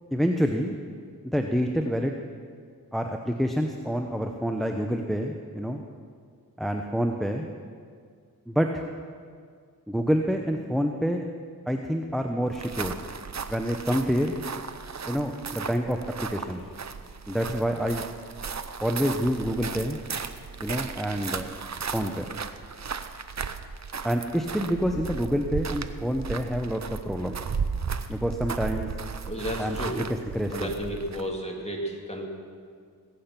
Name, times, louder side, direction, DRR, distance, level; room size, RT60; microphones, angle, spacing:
voice 1, 0.1-0.8 1.3-2.1 2.9-5.8 6.6-7.5 8.5-8.7 9.9-11.2 11.7-13.0 13.5-14.3 15.1-16.6 17.3-18.0 18.8-20.0 20.6-21.5 21.9-22.3 24.0-27.4 28.1-28.9 29.6-30.0 30.3-30.7, equal, ahead, 4 dB, 0.9 m, -27 dB
sound 1, 12.5-31.4, right 6 dB, 50° right, 0.7 m, -35 dB
voice 2, 29.2-30.0 30.5-32.2, equal, 15° left, -1 dB, 2.8 m, -32 dB
19.5 x 8.7 x 6.0 m, 2.1 s
wide cardioid pair, 55°, 36 cm